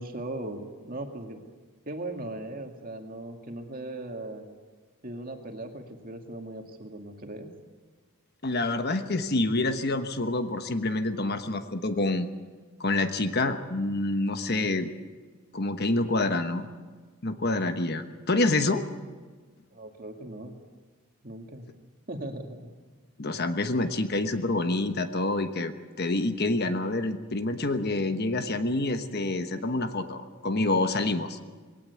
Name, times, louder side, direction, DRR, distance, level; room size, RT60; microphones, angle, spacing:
voice 1, 0.0-1.4 1.9-4.5 5.0-7.5 19.7-20.5 21.2-21.7 22.1-22.7, right 1 dB, 40° right, 4 dB, 2.2 m, -38 dB
voice 2, 8.4-12.3 12.8-14.9 15.5-16.7 17.2-18.8 23.2-31.4, left 2 dB, 45° left, 8 dB, 1.2 m, -27 dB
21.0 x 18.0 x 8.3 m, 1.4 s
head